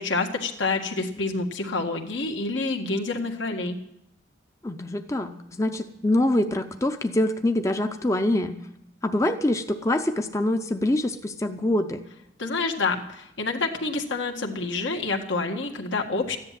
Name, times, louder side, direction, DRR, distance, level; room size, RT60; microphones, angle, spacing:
voice 1, 0.0-3.8 12.4-16.4, left 3 dB, 80° left, 2 dB, 1.8 m, -28 dB
voice 2, 4.6-8.6 9.0-12.0, left 1 dB, 15° left, 7 dB, 0.6 m, -25 dB
14.0 x 10.5 x 7.5 m, 0.79 s
head